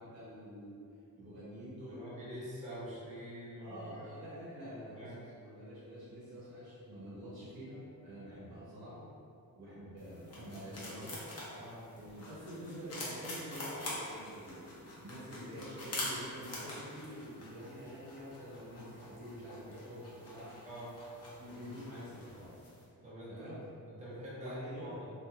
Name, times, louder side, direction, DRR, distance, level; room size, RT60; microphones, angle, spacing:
voice 1, 0.1-0.8 1.1-2.1 3.6-9.1 9.6-11.3 11.9-20.6 21.4-22.6 23.3-23.6 24.4-25.0, equal, 80° right, -9 dB, 0.9 m, -47 dB
voice 2, 1.9-4.1 4.6-5.2 11.5-11.8 20.6-20.9 23.0-23.5 23.9-25.1, equal, 20° right, -9 dB, 0.8 m, -46 dB
sound 1, 10.0-22.8, left 1 dB, 45° left, 0.7 m, -46 dB
2.9 x 2.4 x 2.3 m, 2.5 s
wide cardioid pair, 100°, 36 cm